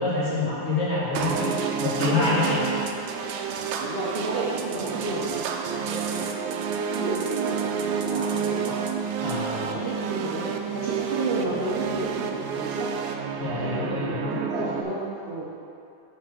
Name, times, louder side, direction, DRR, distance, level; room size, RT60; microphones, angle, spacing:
voice 1, 0.0-1.5 1.8-2.6 9.2-9.8 13.4-14.3, left 3 dB, 35° left, -9 dB, 2.0 m, -26 dB
sound 1, 1.1-14.8, right 6 dB, 80° right, 1.3 m, -30 dB
voice 2, 3.8-5.2 5.7-8.8 9.2-10.4 10.7-12.9 13.5-15.5, right 2 dB, 45° right, -7 dB, 0.8 m, -32 dB
5.8 x 4.7 x 6.2 m, 2.6 s
omnidirectional pair, 2.1 m